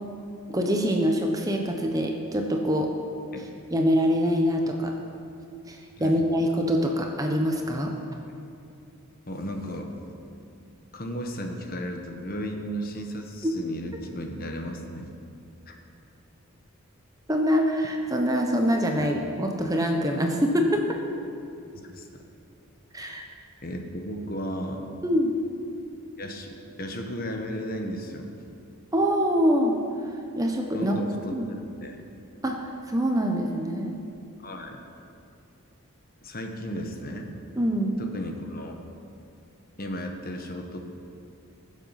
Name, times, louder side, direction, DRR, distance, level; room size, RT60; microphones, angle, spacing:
voice 1, 0.5-2.9 3.7-4.9 5.7-7.9 13.4-13.5 17.3-20.8 22.9-23.3 25.0-25.3 28.9-29.7 30.0-30.9 31.3-31.5 32.4-33.9 37.6-38.0, equal, 15° right, 2 dB, 1.0 m, -24 dB
voice 2, 9.3-9.9 10.9-15.1 15.7-15.8 19.0-19.1 21.7-22.1 23.6-24.9 26.2-28.3 30.7-32.0 34.4-34.8 36.2-37.3 38.0-38.8 39.8-40.8, equal, 40° left, 3 dB, 1.3 m, -35 dB
21.0 x 7.5 x 5.9 m, 2.6 s
head